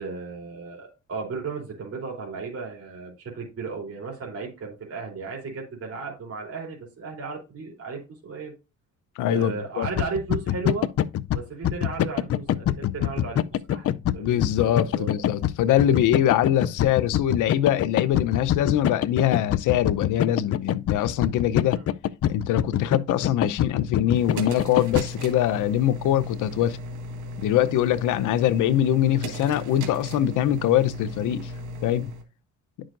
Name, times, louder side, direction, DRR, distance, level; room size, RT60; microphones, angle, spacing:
voice 1, 0.0-8.5 9.2-10.9 11.3-13.4 13.7-15.2 21.8-21.9, right 4 dB, 50° right, 3.2 m, -35 dB
voice 2, 9.2-9.9 14.2-21.8 22.3-26.8 27.4-31.5 31.8-32.1, left 11 dB, 85° left, 0.7 m, -23 dB
sound 1, 9.8-25.0, left 11 dB, 50° left, 0.5 m, -25 dB
sound 2, 24.1-32.2, equal, 80° right, 1.6 m, -36 dB
9.8 x 6.2 x 2.5 m
cardioid pair, 90°, 30 cm